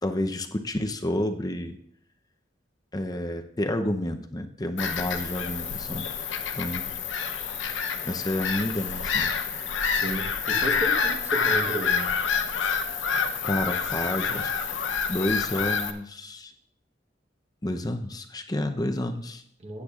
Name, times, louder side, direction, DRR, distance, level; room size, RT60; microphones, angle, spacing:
voice 1, 0.0-1.8 2.9-6.1 6.5-7.0 8.0-9.3 13.4-14.5 15.1-16.5 17.6-19.4, left 1 dB, 20° left, 6 dB, 0.7 m, -30 dB
Bird vocalization bird call bird song / Gull seagull, 4.8-15.9, left 6 dB, 85° left, 0.7 m, -28 dB
voice 2, 9.9-12.1 19.6-19.8, right 1 dB, 35° right, 2 dB, 1.2 m, -33 dB
16.0 x 8.6 x 2.4 m, 0.66 s
head